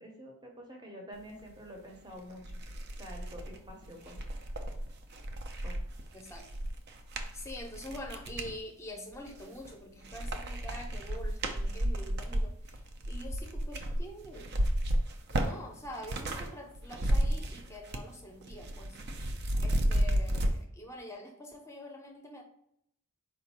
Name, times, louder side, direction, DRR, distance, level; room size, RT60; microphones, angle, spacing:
voice 1, 0.0-2.4 3.0-4.2 5.6-5.8, equal, 20° right, 1 dB, 0.7 m, -47 dB
sound 1, 1.9-2.0 2.4-8.5 9.1-9.7 10.0-16.5 16.7-18.1 18.4-20.5, right 1 dB, 50° right, 0.5 m, -32 dB
voice 2, 6.1-6.5 7.3-14.5 15.3-19.0 19.6-22.4, left 1 dB, 10° left, 1 dB, 0.6 m, -45 dB
4.5 x 2.5 x 4.2 m, 0.72 s
head